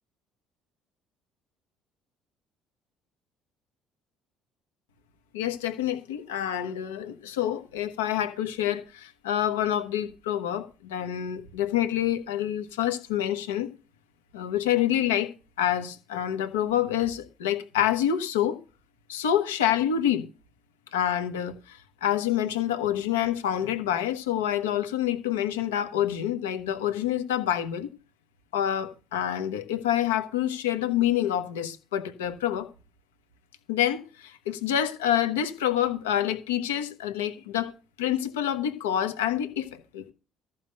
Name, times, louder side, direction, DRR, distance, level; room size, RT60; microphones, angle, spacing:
voice 1, 5.3-13.7 14.3-15.3 15.6-18.6 19.1-20.2 20.9-27.9 28.5-32.7 33.7-37.7 38.0-40.1, left 11 dB, 80° left, 1.2 m, -27 dB
14.0 x 5.7 x 6.5 m
hypercardioid pair, 55°, 0 cm